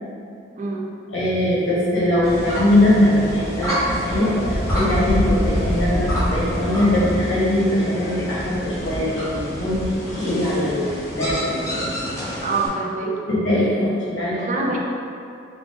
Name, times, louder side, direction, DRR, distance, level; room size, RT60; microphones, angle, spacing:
voice 1, 0.6-0.9 12.4-13.2 14.3-14.8, right 3 dB, 40° right, -1 dB, 0.4 m, -25 dB
voice 2, 1.1-12.0 13.3-14.4, left 1 dB, 75° left, -8 dB, 1.4 m, -21 dB
sound 1, 1.5-7.2, equal, 60° left, 1.2 m, -33 dB
sound 2, 2.2-12.7, equal, 15° left, 1.0 m, -27 dB
4.9 x 2.0 x 3.6 m, 2.6 s
head